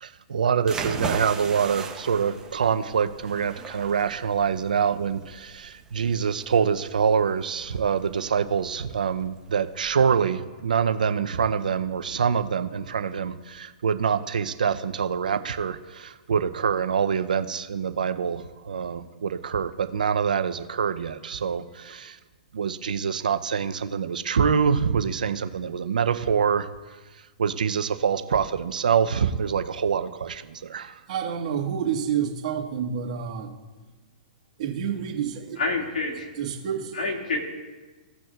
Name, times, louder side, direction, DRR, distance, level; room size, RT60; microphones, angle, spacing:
voice 1, 0.0-22.2 22.5-26.7 27.4-31.0, right 6 dB, 80° right, 10 dB, 0.6 m, -25 dB
sound 1, 0.6-9.9, right 5 dB, 15° right, 1.0 m, -38 dB
voice 2, 31.1-33.5 34.6-35.6 36.4-37.0, right 8 dB, 55° right, -1 dB, 1.7 m, -28 dB
voice 3, 35.6-36.3 36.9-37.4, left 3 dB, 80° left, 1 dB, 2.1 m, -27 dB
17.0 x 6.1 x 2.4 m, 1.3 s
hypercardioid pair, 125°, 4 cm